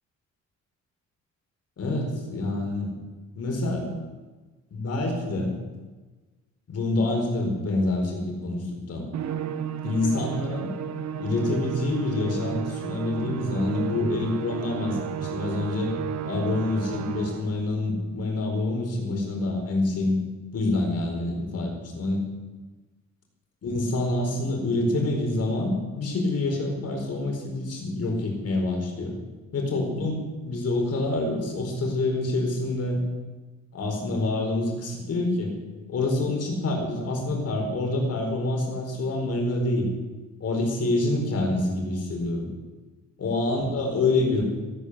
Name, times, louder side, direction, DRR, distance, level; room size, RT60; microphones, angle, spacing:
voice 1, 1.8-2.9 3.4-3.9 4.7-5.5 6.7-9.0 9.8-10.7 11.2-15.9 16.2-20.1 20.5-22.2 23.6-29.1 29.5-33.0 33.7-35.5 35.9-39.9 40.4-42.5 43.2-44.4, left 2 dB, 55° left, 1 dB, 4.7 m, -27 dB
Musical instrument, 9.1-17.6, right 9 dB, 65° right, 1.3 m, -33 dB
15.5 x 9.1 x 8.2 m, 1.3 s
cardioid pair, 90°, 30 cm